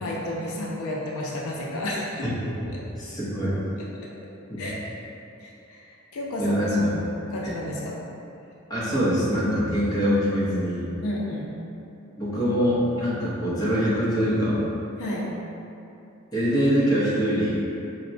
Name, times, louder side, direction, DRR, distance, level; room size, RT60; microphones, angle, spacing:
voice 1, 0.0-2.3 2.7-2.8 3.9-4.3 4.6-4.8 5.4-8.0 11.0-11.5 15.0-15.3, left 1 dB, 75° left, -3 dB, 0.4 m, -32 dB
voice 2, 2.2-3.6 4.5-4.6 6.4-6.9 7.4-7.6 8.7-10.9 12.2-14.6 16.3-17.5, equal, 20° left, -9 dB, 0.7 m, -24 dB
4.2 x 2.0 x 2.6 m, 2.8 s
head